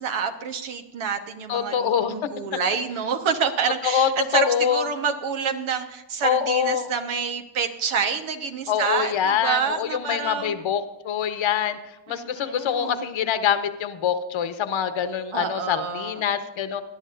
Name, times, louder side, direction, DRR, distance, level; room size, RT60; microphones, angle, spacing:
voice 1, 0.0-10.6 12.1-13.1 15.3-16.3, right 6 dB, 90° right, 5 dB, 1.3 m, -28 dB
voice 2, 1.5-2.3 3.8-4.8 6.2-6.9 8.7-11.8 12.1-16.8, left 8 dB, 70° left, 10 dB, 1.2 m, -25 dB
20.0 x 10.5 x 2.6 m, 0.98 s
cardioid pair, 60°, 48 cm